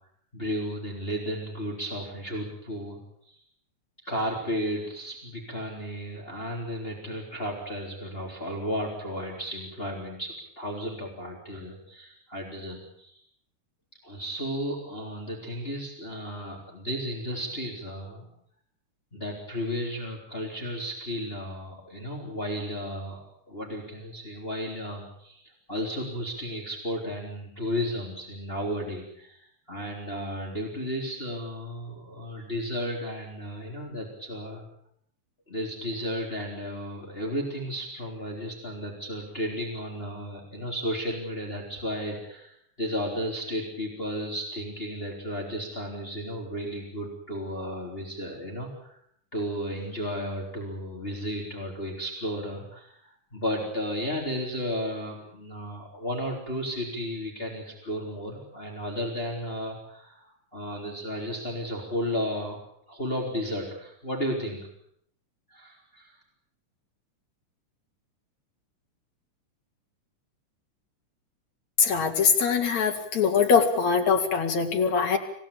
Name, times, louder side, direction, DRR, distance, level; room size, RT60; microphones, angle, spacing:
voice 1, 0.3-3.0 3.3-3.4 4.0-13.2 14.0-18.3 19.1-34.7 35.5-49.0 49.3-62.6 62.9-64.7 65.5-66.2, equal, 15° left, 0 dB, 4.1 m, -33 dB
voice 2, 71.8-75.2, left 6 dB, 65° left, 4 dB, 3.9 m, -22 dB
27.0 x 17.0 x 8.8 m, 0.69 s
omnidirectional pair, 3.5 m